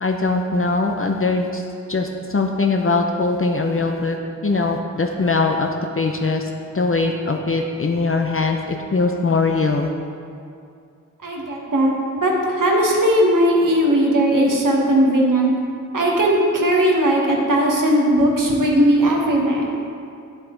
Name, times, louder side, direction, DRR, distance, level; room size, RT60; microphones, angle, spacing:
voice 1, 0.0-1.6 1.9-4.2 4.4-5.7 6.0-6.4 6.7-9.9, left 3 dB, 45° left, 3 dB, 0.6 m, -21 dB
voice 2, 11.2-15.5 15.9-19.7, right 1 dB, 85° right, -1 dB, 1.3 m, -18 dB
8.5 x 7.4 x 3.8 m, 2.4 s
wide cardioid pair, 70°, 31 cm